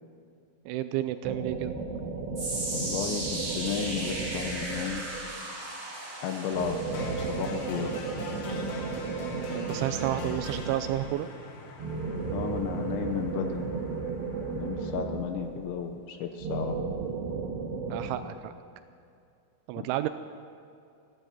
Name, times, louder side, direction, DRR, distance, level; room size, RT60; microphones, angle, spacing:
voice 1, 0.7-1.7 9.5-11.3 17.9-18.5 19.7-20.1, right 13 dB, 85° right, 11 dB, 2.7 m, -31 dB
sound 1, 1.2-5.4 6.5-11.2 11.8-15.8 16.4-18.1, right 4 dB, 65° right, 3.4 m, -34 dB
sound 2, 2.3-14.7 15.0-15.3 16.0-16.1, right 2 dB, 20° right, 2.0 m, -39 dB
voice 2, 2.7-5.0 6.2-7.9 12.3-13.7 14.5-16.8 19.8-19.9, left 8 dB, 75° left, 6 dB, 2.9 m, -33 dB
sound 3, 6.9-14.9, left 4 dB, 60° left, 3.5 m, -43 dB
16.0 x 12.0 x 7.4 m, 2.5 s
omnidirectional pair, 5.8 m